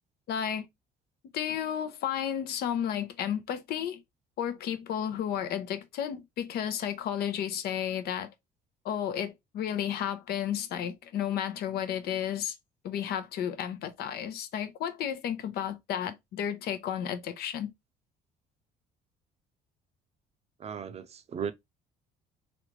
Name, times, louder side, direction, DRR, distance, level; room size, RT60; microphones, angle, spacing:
voice 1, 0.3-0.6 1.3-4.0 4.4-8.3 8.8-12.5 12.8-17.7, left 9 dB, 70° left, 0.7 m, -32 dB
voice 2, 20.6-21.5, right 7 dB, 40° right, 0.5 m, -36 dB
3.2 x 2.5 x 2.9 m
cardioid pair, 110°, 17 cm